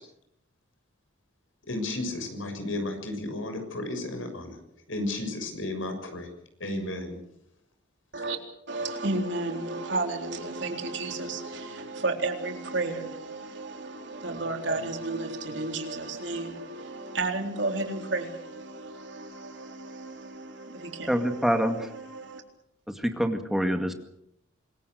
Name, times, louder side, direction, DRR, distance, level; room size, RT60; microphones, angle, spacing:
voice 1, 1.7-4.6 4.9-6.3 6.6-7.2, left 2 dB, 90° left, 7.0 m, -33 dB
voice 2, 8.7-22.4, right 2 dB, 65° right, 3.9 m, -33 dB
voice 3, 21.1-21.9 22.9-23.9, equal, ahead, 2.1 m, -26 dB
26.0 x 22.5 x 6.7 m
head